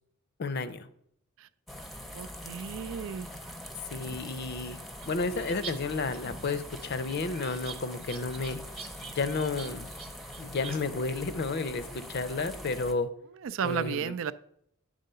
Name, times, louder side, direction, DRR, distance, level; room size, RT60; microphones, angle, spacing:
voice 1, 0.4-0.9 3.9-4.8 5.1-8.6 9.1-9.9 10.4-13.1 13.6-14.1, left 3 dB, 55° left, 13 dB, 0.6 m, -32 dB
sound 1, 1.7-12.9, equal, ahead, 0.6 m, -43 dB
voice 2, 2.1-3.3 13.4-14.3, right 7 dB, 65° right, 14 dB, 0.4 m, -33 dB
sound 2, 4.0-5.7 6.0-10.8, right 5 dB, 30° right, 1.0 m, -45 dB
9.0 x 3.7 x 6.6 m, 0.71 s
head